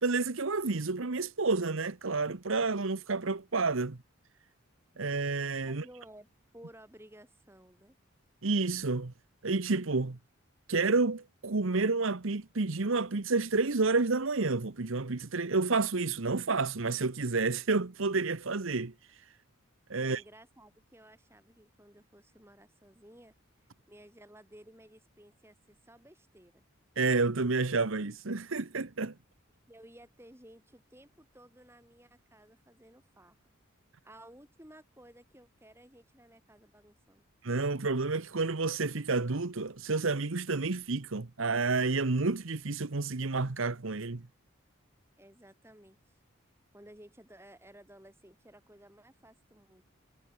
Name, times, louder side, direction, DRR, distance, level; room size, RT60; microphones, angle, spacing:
voice 1, 0.0-4.0 5.0-5.8 8.4-9.1 9.4-10.2 10.7-18.9 19.9-20.2 27.0-29.1 37.4-44.3, right 3 dB, 70° right, 1.0 m, -30 dB
voice 2, 5.6-6.3 6.5-8.0 20.0-23.3 23.6-26.6 29.7-33.4 34.0-37.3 45.2-46.2 46.7-49.8, right 1 dB, 10° right, 4.2 m, -56 dB
head